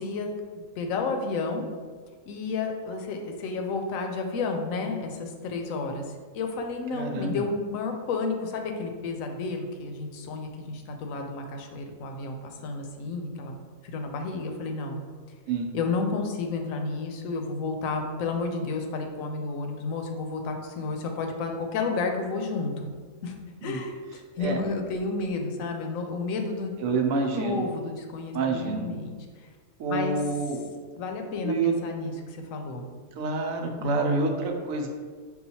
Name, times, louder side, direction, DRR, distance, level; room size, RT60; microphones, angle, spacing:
voice 1, 0.0-1.6 2.3-6.0 6.3-13.5 13.8-15.0 15.7-22.9 23.2-23.3 23.6-26.8 27.2-29.5 29.9-30.2 31.0-32.9 33.8-34.3, left 3 dB, 85° left, 4 dB, 1.0 m, -31 dB
voice 2, 6.9-7.4 15.5-15.7 23.6-23.8 24.4-24.6 26.8-27.6 28.3-28.9 29.8-30.6 31.4-31.7 33.2-34.9, right 4 dB, 85° right, 3 dB, 1.0 m, -27 dB
5.5 x 2.4 x 2.7 m, 1.6 s
omnidirectional pair, 1.4 m